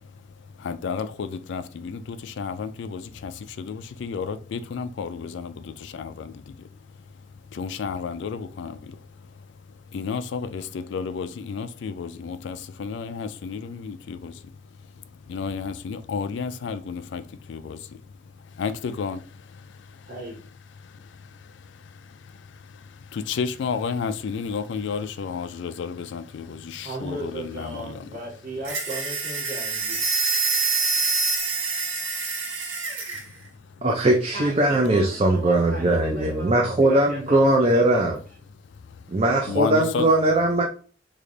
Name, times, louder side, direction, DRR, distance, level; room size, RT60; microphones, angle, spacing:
voice 1, 0.0-20.1 20.7-28.1 33.1-33.9 38.5-40.1, left 5 dB, 65° left, 0.3 m, -33 dB
voice 2, 20.1-20.4 26.8-30.0 34.0-34.1 34.3-38.2, right 1 dB, 45° right, 1.3 m, -37 dB
sound 1, 28.6-33.3, right 4 dB, 85° right, 0.9 m, -26 dB
voice 3, 33.8-38.2 39.1-40.6, right 1 dB, 30° right, 0.4 m, -20 dB
3.2 x 2.5 x 3.7 m
head